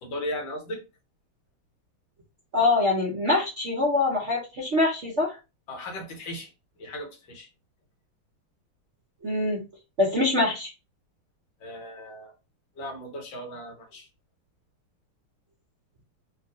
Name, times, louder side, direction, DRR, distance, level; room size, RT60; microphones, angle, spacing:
voice 1, 0.0-0.8 5.7-6.5 6.8-7.5 11.6-12.3 12.8-14.1, left 1 dB, 65° left, 1.7 m, -36 dB
voice 2, 2.5-5.4 9.2-9.6 10.0-10.7, left 2 dB, 55° right, 0.8 m, -24 dB
3.8 x 2.3 x 2.6 m
omnidirectional pair, 2.4 m